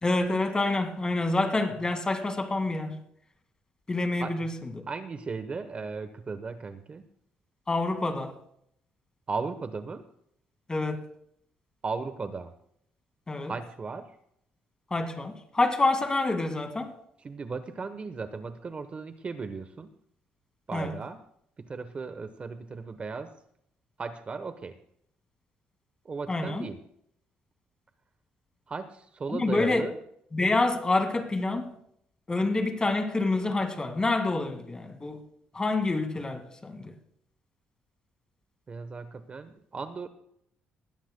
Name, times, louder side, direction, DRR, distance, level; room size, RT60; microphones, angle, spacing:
voice 1, 0.0-3.0 3.9-4.5 7.7-8.3 10.7-11.0 13.3-13.5 14.9-16.9 20.7-20.9 26.3-26.7 29.3-29.9 30.3-31.7 32.3-35.2 35.5-36.9, left 2 dB, 20° left, 2.0 m, -27 dB
voice 2, 4.9-7.0 9.3-10.1 11.8-12.5 13.4-14.1 17.2-19.9 20.7-21.2 21.6-23.3 24.0-24.8 26.0-26.8 28.7-30.0 38.7-40.1, right 4 dB, 30° right, 0.9 m, -36 dB
19.5 x 16.0 x 2.2 m
cardioid pair, 115°, 4 cm